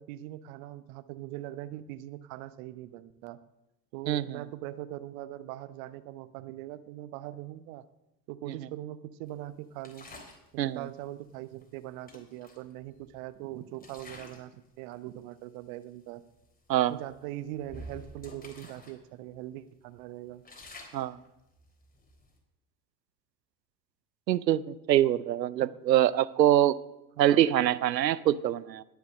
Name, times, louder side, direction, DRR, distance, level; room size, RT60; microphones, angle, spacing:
voice 1, 0.0-3.4 3.9-7.9 8.3-10.1 10.6-16.2 16.9-20.4 25.6-25.7 27.2-27.5, right 14 dB, 55° right, 14 dB, 1.0 m, -41 dB
voice 2, 4.1-4.4 10.6-10.8 16.7-17.0 20.9-21.2 24.3-26.8 27.2-28.8, right 12 dB, 80° right, 19 dB, 0.6 m, -24 dB
sound 1, 9.8-10.5 11.6-11.7 12.1-13.3 13.7-14.5 14.9-15.2 15.8-15.9 16.3-16.5 17.0-19.0 19.3-19.4 19.9-22.4, left 1 dB, 15° left, 3.6 m, -49 dB
20.5 x 7.0 x 6.5 m, 0.93 s
figure-of-eight pair, 65°, 49 cm